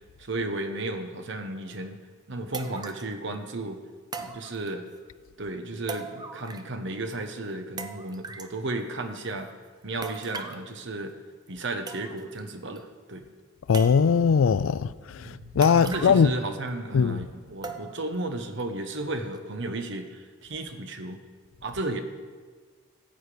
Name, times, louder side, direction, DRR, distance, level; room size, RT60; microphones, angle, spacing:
voice 1, 0.2-2.0 2.3-3.8 4.2-4.8 5.4-9.5 9.8-11.1 11.5-13.2 15.2-21.2 21.6-22.0, right 2 dB, 65° right, 1.1 m, -34 dB
sound 1, 1.7-1.8 2.5-3.1 4.1-5.0 5.9-6.8 7.1-7.2 7.8-8.6 10.0-10.7 11.5-11.6 11.9-12.4 12.8-12.9 13.7-14.3 15.6-16.4 16.7-16.8 17.6-18.2 18.6-18.7 19.3-19.4, right 4 dB, 20° right, 0.6 m, -39 dB
voice 2, 13.7-14.9 15.6-16.3 16.9-17.2, left 6 dB, 90° left, 0.4 m, -20 dB
14.5 x 8.1 x 5.1 m
head